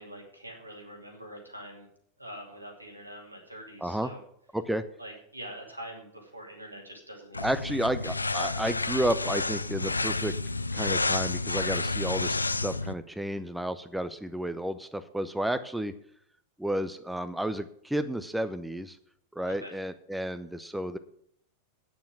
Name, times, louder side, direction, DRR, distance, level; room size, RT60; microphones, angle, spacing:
voice 1, 0.0-1.9 2.2-4.2 5.0-7.8 19.5-19.7, equal, 85° right, 1 dB, 2.6 m, -44 dB
voice 2, 4.5-4.8 7.4-10.3 10.7-15.9 16.6-19.0 19.3-21.0, right 1 dB, 5° right, 11 dB, 0.6 m, -31 dB
sound 1, 7.3-12.9, left 3 dB, 80° left, 0.4 m, -30 dB
9.3 x 6.9 x 7.4 m, 0.66 s
figure-of-eight pair, 90°, 0 cm